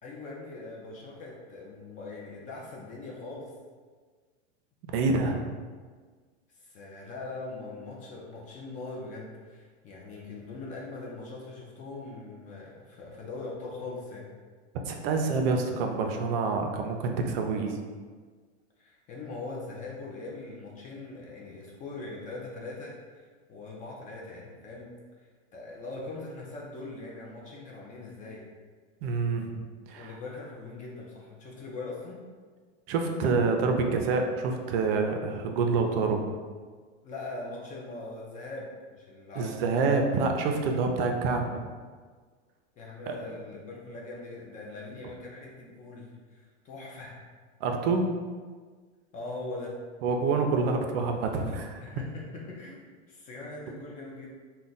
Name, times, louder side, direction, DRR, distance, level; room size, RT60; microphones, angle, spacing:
voice 1, 0.0-3.5 6.6-14.3 18.8-24.9 25.5-28.4 29.9-32.2 37.0-39.6 42.7-47.2 49.1-49.8 51.8-52.8 53.1-54.3, left 3 dB, 25° left, -3 dB, 0.4 m, -41 dB
voice 2, 4.9-5.5 14.9-17.7 29.0-29.5 29.9-30.1 32.9-36.2 39.4-41.7 43.1-43.2 47.6-48.1 50.0-51.8, right 4 dB, 55° right, 3 dB, 0.5 m, -27 dB
2.4 x 2.1 x 3.8 m, 1.5 s
hypercardioid pair, 120°, 35 cm